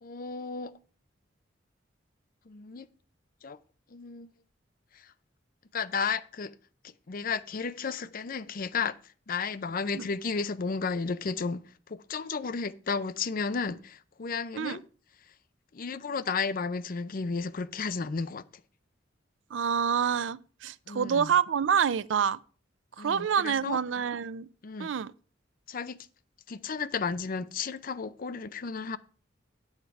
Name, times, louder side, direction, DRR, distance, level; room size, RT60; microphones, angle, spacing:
voice 1, 0.0-0.7 2.5-2.9 3.4-3.6 3.9-4.3 4.9-5.1 5.7-6.5 6.8-9.0 9.3-14.8 15.7-18.4 20.9-21.3 23.0-23.8 24.6-24.9 25.7-26.0 26.5-29.0, left 5 dB, 50° left, 0.5 m, -33 dB
voice 2, 19.5-22.4 23.0-24.5 24.8-25.1, right 7 dB, 85° right, 0.4 m, -27 dB
10.0 x 7.3 x 4.6 m
head